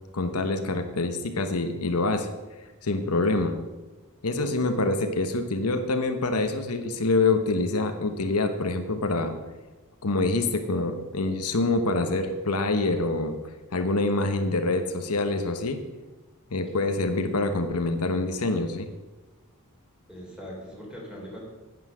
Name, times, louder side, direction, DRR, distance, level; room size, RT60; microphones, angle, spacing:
voice 1, 0.1-2.3 2.8-3.6 4.2-9.3 10.0-13.4 13.7-15.8 16.5-18.9, left 2 dB, 85° left, 6 dB, 1.1 m, -26 dB
voice 2, 4.4-4.8 16.7-16.8 20.1-21.4, equal, 5° right, -3 dB, 3.7 m, -40 dB
9.6 x 8.9 x 6.2 m, 1.2 s
head